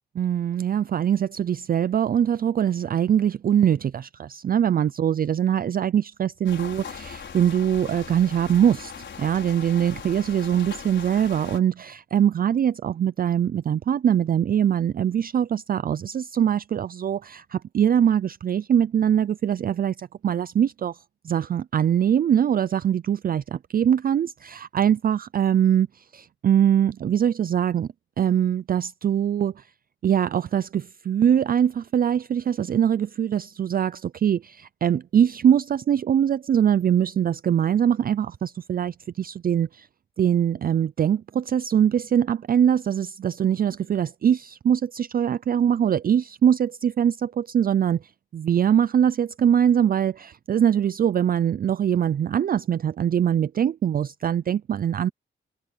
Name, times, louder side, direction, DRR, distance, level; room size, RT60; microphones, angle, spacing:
voice 1, 0.2-8.9 9.2-27.9 28.2-29.7 30.0-39.9 40.2-48.0 48.3-55.1, right 9 dB, 45° right, 0.4 m, -22 dB
sound 1, 6.4-11.6, left 6 dB, 65° left, 5.8 m, -39 dB
cardioid pair, 100°, 21 cm